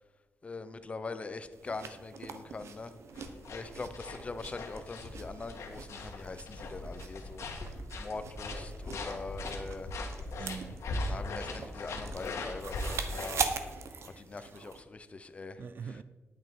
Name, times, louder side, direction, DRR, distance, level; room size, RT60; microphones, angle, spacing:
voice 1, 0.4-2.9 3.5-7.4 8.0-9.9 11.1-13.5 14.2-15.6, left 3 dB, 25° left, 0.6 m, -42 dB
sound 1, 1.5-14.8, right 6 dB, 70° right, 1.0 m, -42 dB
sound 2, 3.1-13.3, left 2 dB, 80° left, 1.6 m, -40 dB
voice 2, 10.4-10.8 13.7-14.6 15.6-16.0, right 6 dB, 45° right, 0.4 m, -45 dB
10.5 x 9.0 x 4.6 m
wide cardioid pair, 175°, 5 cm